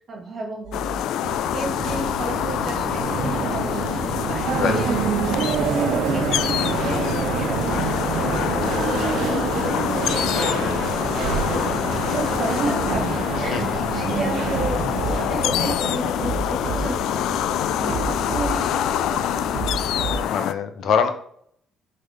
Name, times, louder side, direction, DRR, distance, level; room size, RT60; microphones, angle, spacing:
voice 1, 0.0-5.5 6.1-14.8 15.1-19.5, right 2 dB, 35° right, 1 dB, 2.0 m, -33 dB
sound 1, 0.6-20.3, right 5 dB, 85° right, 1.0 m, -33 dB
sound 2, 0.7-20.5, left 11 dB, 75° left, 0.3 m, -25 dB
sound 3, 1.8-15.8, right 7 dB, 60° right, 0.6 m, -27 dB
voice 2, 20.3-21.1, left 7 dB, 55° left, 8 dB, 0.8 m, -24 dB
6.5 x 4.0 x 5.1 m, 0.65 s
cardioid pair, 170°, 0 cm